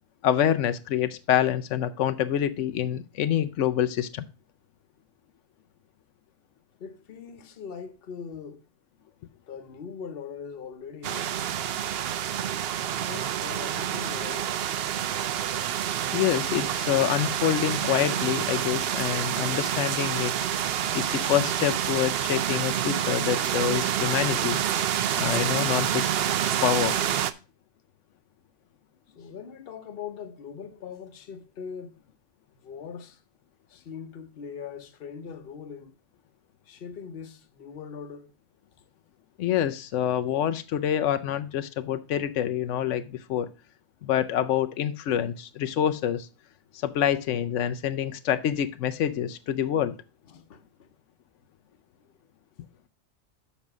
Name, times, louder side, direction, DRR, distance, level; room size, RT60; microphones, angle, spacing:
voice 1, 0.2-4.2 16.1-20.3 20.9-24.6 25.2-26.1 26.6-27.0 39.4-43.5 44.0-46.3 46.8-49.9, left 10 dB, 90° left, 1.0 m, -26 dB
voice 2, 6.8-8.6 9.5-11.4 13.0-14.7 29.1-32.0 32.6-33.2 33.7-35.9 36.7-38.3 50.3-50.9, left 6 dB, 55° left, 1.0 m, -41 dB
sound 1, 11.0-27.3, right 10 dB, 65° right, 0.7 m, -28 dB
7.2 x 5.3 x 5.9 m
omnidirectional pair, 1.2 m